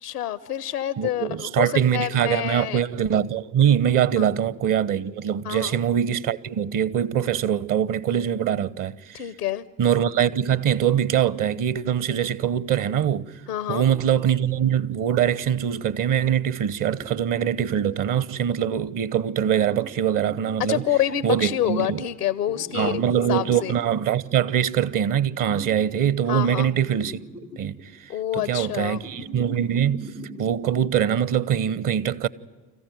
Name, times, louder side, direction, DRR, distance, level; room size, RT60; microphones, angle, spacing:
voice 1, 0.0-2.8 4.2-4.3 5.4-5.7 9.1-9.6 13.5-13.9 20.7-23.0 23.3-23.8 26.3-26.7 28.1-29.1, left 12 dB, 80° left, 0.9 m, -27 dB
voice 2, 1.0-9.2 9.8-13.4 13.7-20.8 21.2-22.0 22.7-27.2 27.6-30.1 30.4-32.3, right 9 dB, 45° right, 0.9 m, -23 dB
sound 1, 14.3-15.7 16.8-18.5 19.5-21.4 22.5-24.0 25.4-26.0 26.3-27.8 28.9-30.4, right 1 dB, 85° right, 3.5 m, -41 dB
26.5 x 15.0 x 9.3 m
figure-of-eight pair, 50°, 46 cm